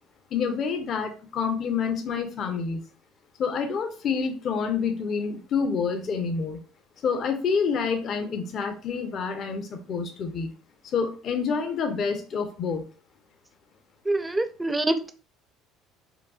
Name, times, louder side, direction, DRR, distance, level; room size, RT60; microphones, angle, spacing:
voice 1, 0.3-2.8 3.4-6.6 7.0-10.5 10.9-12.8, left 5 dB, 50° left, 5 dB, 0.6 m, -28 dB
voice 2, 14.0-15.1, right 2 dB, 10° right, 8 dB, 0.5 m, -25 dB
3.9 x 2.3 x 2.3 m, 0.37 s
supercardioid pair, 80°, 0 cm